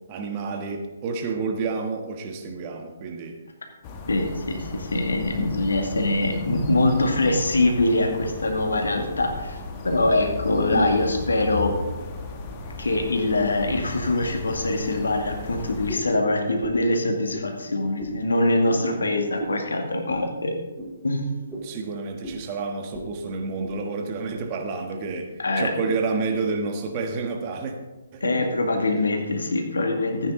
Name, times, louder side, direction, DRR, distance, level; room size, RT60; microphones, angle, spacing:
voice 1, 0.1-3.4 10.7-11.0 21.6-27.7 28.1-28.3, right 4 dB, 30° right, 3 dB, 1.5 m, -29 dB
sound 1, 3.8-16.0, left 4 dB, 30° left, 1.5 m, -36 dB
voice 2, 4.1-9.6 9.8-11.8 12.8-20.5 21.0-21.3 25.4-25.7 28.2-30.3, left 2 dB, 70° left, 3 dB, 2.2 m, -23 dB
sound 2, 15.9-16.2 16.6-16.9 17.3-17.5 18.0-18.2 18.6-18.8 19.4-19.6 20.1-20.2 20.7-20.9 21.5-21.7 22.2-22.4 22.9-23.1 23.4-23.8 24.3-24.4 25.0-25.2, right 1 dB, 5° right, 3.4 m, -35 dB
14.5 x 9.5 x 3.9 m, 1.2 s
figure-of-eight pair, 135°, 0 cm